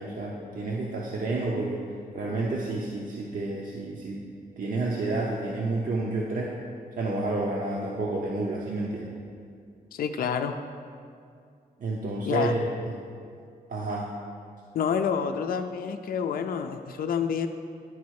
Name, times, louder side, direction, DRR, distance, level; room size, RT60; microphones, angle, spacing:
voice 1, 0.0-1.8 2.1-4.2 4.6-6.5 7.0-9.1 11.8-12.7 13.7-14.1, right 2 dB, 60° right, -3 dB, 0.8 m, -30 dB
voice 2, 9.9-10.6 12.3-12.5 14.7-17.5, left 7 dB, 70° left, 7 dB, 0.4 m, -28 dB
10.5 x 4.1 x 4.7 m, 2.3 s
wide cardioid pair, 110°, 16 cm